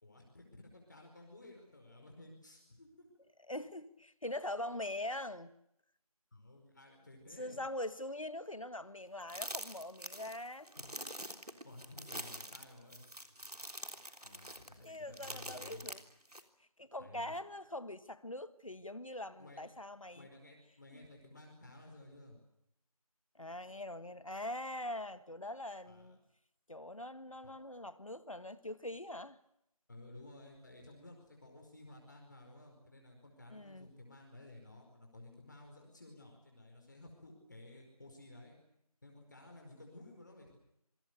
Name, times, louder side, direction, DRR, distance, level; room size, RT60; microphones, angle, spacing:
voice 1, 0.0-2.9 6.3-7.6 10.8-10.9 11.6-13.0 14.2-15.9 17.0-17.4 19.4-19.6 20.1-22.4 25.8-26.2 27.4-27.5 29.9-38.6 39.0-40.6, left 2 dB, 30° left, 5.0 m, -55 dB
voice 2, 3.5-5.5 7.4-10.7 14.8-16.0 16.8-20.3 20.9-21.0 23.3-26.2 26.7-29.4 33.5-33.9, left 1 dB, 60° left, 1.6 m, -43 dB
sound 1, 9.3-16.4, right 1 dB, 80° right, 3.5 m, -45 dB
28.0 x 24.5 x 6.7 m
figure-of-eight pair, 170°, 19 cm